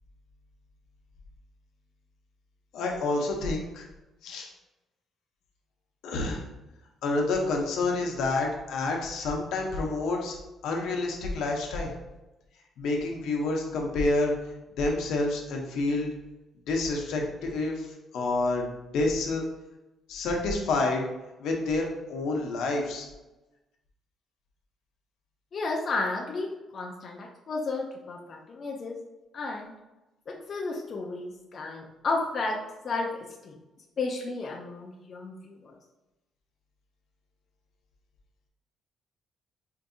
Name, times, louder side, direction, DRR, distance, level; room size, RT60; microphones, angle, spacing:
voice 1, 2.7-3.9 4.2-4.5 6.0-6.4 7.0-10.4 10.6-11.9 12.8-14.3 14.8-16.1 16.7-19.4 20.1-21.1 21.4-23.1, left 2 dB, 80° left, 0 dB, 0.7 m, -28 dB
voice 2, 25.5-26.5 26.7-29.0 29.3-29.7 30.3-33.6 34.0-35.8, left 3 dB, 40° left, -1 dB, 0.4 m, -33 dB
4.6 x 2.6 x 2.6 m, 1.0 s
cardioid pair, 150°, 0 cm